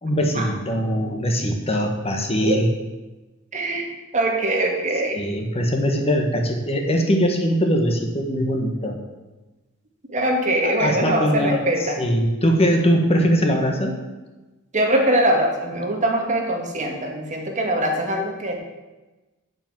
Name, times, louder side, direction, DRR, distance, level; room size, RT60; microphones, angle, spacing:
voice 1, 0.0-2.7 5.1-9.0 10.6-14.0, equal, 30° left, 3 dB, 1.3 m, -21 dB
voice 2, 3.5-3.9 4.1-5.2 10.1-12.0 14.7-18.6, right 1 dB, 35° right, 2 dB, 1.8 m, -22 dB
8.5 x 7.5 x 7.3 m, 1.1 s
head